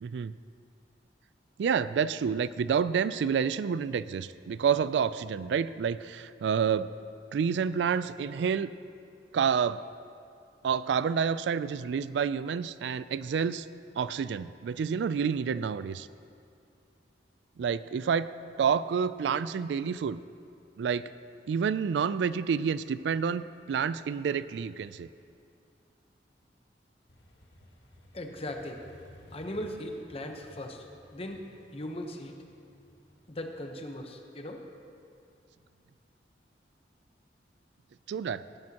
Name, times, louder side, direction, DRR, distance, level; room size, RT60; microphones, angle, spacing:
voice 1, 0.0-0.3 1.6-6.9 7.3-8.7 9.3-9.8 10.6-13.7 14.0-16.1 17.6-18.3 18.6-20.2 20.8-21.1 21.5-25.1 38.1-38.4, right 6 dB, 80° right, 15 dB, 0.3 m, -29 dB
Motorcycle, 27.1-34.7, equal, 85° left, 1.5 m, -56 dB
voice 2, 28.1-28.8 29.3-30.9 31.1-31.4 31.7-32.4 33.3-34.6, left 1 dB, 35° left, 3 dB, 1.0 m, -38 dB
18.5 x 10.5 x 2.9 m, 2.4 s
head